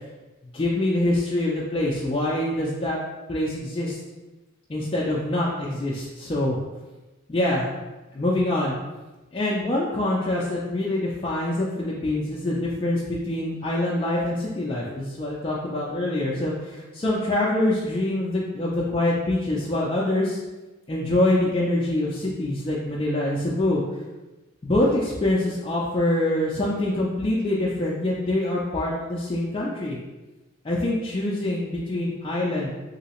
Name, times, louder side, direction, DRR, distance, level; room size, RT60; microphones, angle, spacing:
voice 1, 0.5-3.0 3.3-4.0 4.7-6.6 7.3-7.8 8.1-8.8 9.3-20.4 20.9-23.8 24.6-30.0 30.6-32.8, left 1 dB, 25° left, -5 dB, 0.3 m, -25 dB
3.1 x 2.8 x 2.9 m, 1.1 s
head